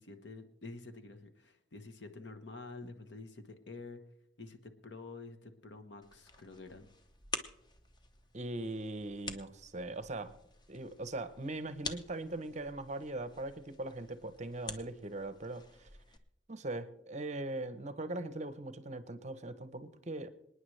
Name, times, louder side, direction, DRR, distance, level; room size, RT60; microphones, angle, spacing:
voice 1, 0.0-4.0 4.4-6.9, left 3 dB, 60° left, 8 dB, 1.1 m, -48 dB
sound 1, 6.0-16.2, left 3 dB, 20° left, 0.7 m, -48 dB
voice 2, 8.3-10.3 10.7-15.9 16.5-20.3, right 2 dB, 35° right, 12 dB, 0.7 m, -40 dB
26.5 x 9.6 x 3.2 m, 0.77 s
head